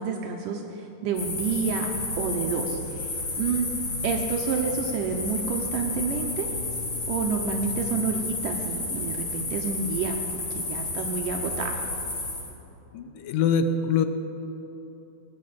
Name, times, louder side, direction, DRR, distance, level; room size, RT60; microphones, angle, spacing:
voice 1, 0.0-1.9 2.2-3.7 4.0-6.5 7.1-11.8, right 5 dB, 75° right, 2 dB, 2.3 m, -29 dB
sound 1, 1.1-12.5, left 2 dB, 40° left, 3.0 m, -31 dB
voice 2, 12.9-14.1, left 5 dB, 75° left, 9 dB, 2.4 m, -24 dB
19.5 x 8.6 x 8.4 m, 3.0 s
omnidirectional pair, 4.0 m